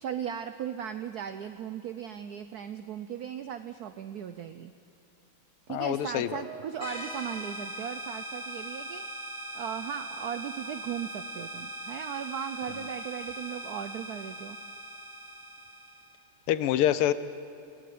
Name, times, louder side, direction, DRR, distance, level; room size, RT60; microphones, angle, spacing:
voice 1, 0.0-4.7 5.7-9.1 9.5-14.6, right 9 dB, 90° right, 10 dB, 0.8 m, -37 dB
voice 2, 5.7-6.4 16.5-17.1, left 12 dB, 85° left, 14 dB, 1.6 m, -26 dB
Piano, 6.4-9.1 9.3-9.7 10.5-10.6, right 8 dB, 55° right, 2.3 m, -53 dB
sound 1, 6.8-16.2, right 1 dB, 20° left, 2.4 m, -40 dB
18.5 x 16.5 x 9.5 m, 2.5 s
omnidirectional pair, 2.4 m